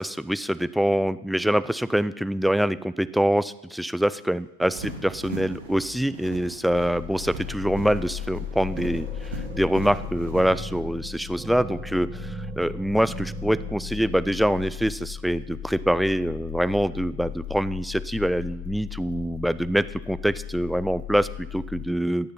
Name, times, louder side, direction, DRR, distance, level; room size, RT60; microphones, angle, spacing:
voice 1, 0.0-22.3, equal, ahead, 15 dB, 0.4 m, -25 dB
sound 1, 4.6-10.8, right 2 dB, 60° right, 2.5 m, -39 dB
sound 2, 6.7-21.9, left 11 dB, 50° left, 0.7 m, -37 dB
sound 3, 8.0-8.4 8.7-15.4, right 5 dB, 15° right, 1.1 m, -40 dB
17.5 x 6.6 x 5.8 m, 0.91 s
figure-of-eight pair, 90°, 0 cm